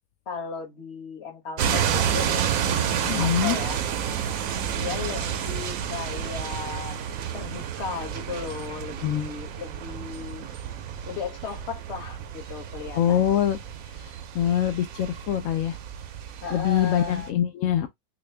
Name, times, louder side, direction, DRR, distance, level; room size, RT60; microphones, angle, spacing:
voice 1, 0.3-3.8 4.7-7.0 7.3-10.5 11.1-13.3 16.2-17.3, left 6 dB, 45° left, 1.1 m, -36 dB
sound 1, 1.6-17.3, right 8 dB, 70° right, 0.8 m, -30 dB
voice 2, 3.0-3.6 9.0-9.3 13.0-13.6 14.3-15.8 16.5-17.9, left 10 dB, 75° left, 0.7 m, -24 dB
4.1 x 2.2 x 3.2 m
omnidirectional pair, 1.9 m